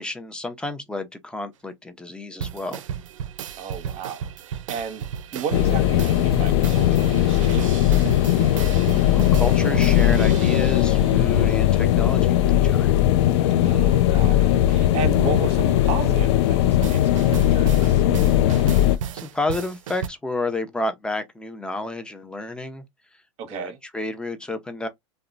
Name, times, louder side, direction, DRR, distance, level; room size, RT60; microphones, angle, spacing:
voice 1, 0.0-2.8 8.6-8.7 9.1-12.9 19.1-22.8 23.5-24.9, left 2 dB, 5° left, 0.6 m, -30 dB
sound 1, 2.4-11.6 16.8-20.1, right 8 dB, 85° right, 0.4 m, -34 dB
voice 2, 3.6-8.1 13.6-18.0 23.4-23.8, right 7 dB, 40° right, 0.8 m, -34 dB
sound 2, 5.5-19.0, left 12 dB, 65° left, 0.4 m, -19 dB
2.8 x 2.1 x 2.4 m
hypercardioid pair, 115°, 16 cm